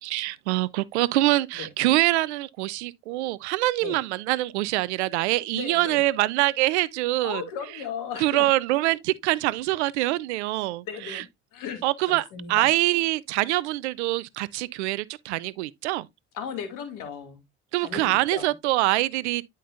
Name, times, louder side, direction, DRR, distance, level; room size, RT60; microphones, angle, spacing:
voice 1, 0.0-7.4 8.2-11.2 11.8-16.1 17.7-19.5, right 18 dB, 85° right, 0.5 m, -25 dB
voice 2, 5.5-6.0 7.2-8.5 10.8-12.7 16.3-17.4 17.8-18.5, left 7 dB, 70° left, 2.3 m, -36 dB
10.0 x 5.3 x 2.4 m
hypercardioid pair, 60°, 33 cm